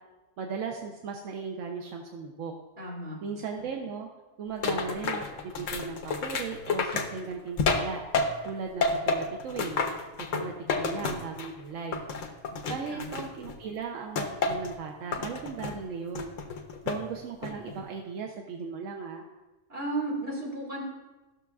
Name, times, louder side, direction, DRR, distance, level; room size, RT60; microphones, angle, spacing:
voice 1, 0.4-2.5 3.2-4.1 4.4-8.0 8.4-9.8 10.3-12.0 12.7-16.3 16.8-19.2, right 5 dB, 85° right, 1 dB, 1.0 m, -37 dB
voice 2, 2.8-3.2 12.5-13.1 19.7-20.8, right 2 dB, 50° right, -4 dB, 2.3 m, -34 dB
sound 1, 4.6-8.5 8.8-11.6 11.9-13.6 14.2-14.7 15.1-15.8 16.2-17.1 17.4-17.8, left 4 dB, 80° left, 1.1 m, -30 dB
14.0 x 6.3 x 2.3 m, 1.1 s
omnidirectional pair, 1.3 m